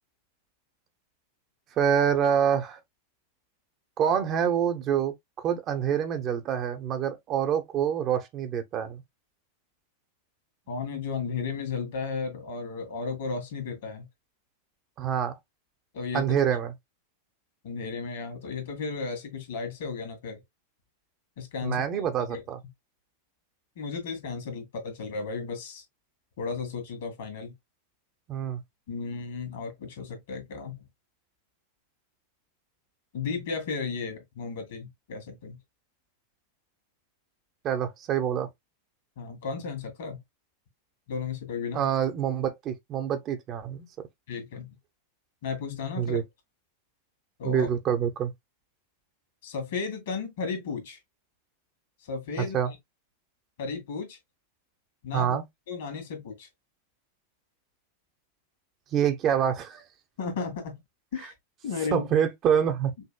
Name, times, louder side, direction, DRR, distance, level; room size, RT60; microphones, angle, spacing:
voice 1, 1.8-2.8 4.0-9.0 15.0-15.4 16.1-16.7 21.6-22.6 28.3-28.6 37.6-38.5 41.7-43.9 46.0-46.2 47.4-48.3 52.4-52.7 55.1-55.4 58.9-59.8 61.9-62.9, right 8 dB, 35° right, 0.9 m, -26 dB
voice 2, 10.7-14.1 15.9-16.4 17.6-20.4 21.4-21.8 22.3-22.4 23.8-25.8 26.4-27.5 28.9-30.8 33.1-35.6 39.2-40.2 41.1-41.9 44.3-44.7 45.4-46.2 47.4-47.7 49.4-51.0 52.0-52.8 53.6-54.2 55.0-55.4 55.7-56.5 60.2-60.8 61.1-61.3 61.6-62.1, left 5 dB, 55° left, 2.0 m, -34 dB
5.6 x 2.9 x 2.3 m
figure-of-eight pair, 90°, 0 cm